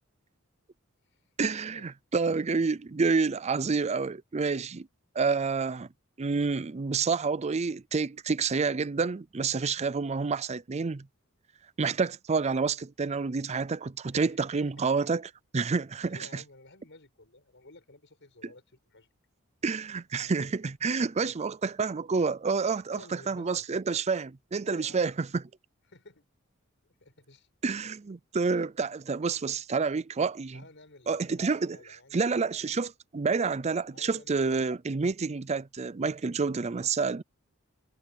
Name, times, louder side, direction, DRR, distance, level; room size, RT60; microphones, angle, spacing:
voice 1, 1.4-4.9 5.2-5.9 6.2-11.1 11.8-15.2 15.5-16.2 19.6-25.3 27.6-30.6 31.1-31.8 32.1-37.2, right 4 dB, 30° right, 0.5 m, -28 dB
voice 2, 14.1-14.9 16.1-19.1 21.2-21.4 22.9-23.7 24.6-25.1 25.9-26.3 26.8-27.5 30.5-32.4 33.8-34.6, left 2 dB, 60° left, 6.4 m, -54 dB
head